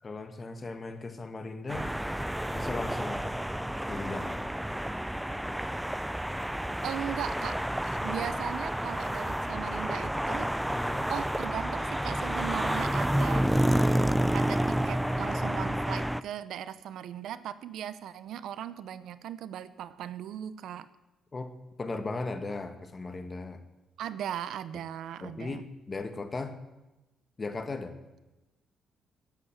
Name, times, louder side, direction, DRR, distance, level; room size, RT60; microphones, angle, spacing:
voice 1, 0.0-1.9 2.5-3.3 3.9-4.5 7.9-8.1 10.7-11.0 13.3-13.5 21.3-21.5 21.8-23.6 25.2-26.6 27.4-28.0, left 3 dB, 30° left, 8 dB, 1.8 m, -37 dB
sound 1, 1.7-16.2, right 1 dB, 5° right, 0.4 m, -30 dB
voice 2, 6.8-10.5 11.1-13.5 14.3-20.9 24.0-25.6, right 10 dB, 75° right, 15 dB, 0.8 m, -38 dB
16.5 x 8.3 x 8.0 m, 1.0 s
cardioid pair, 90°, 0 cm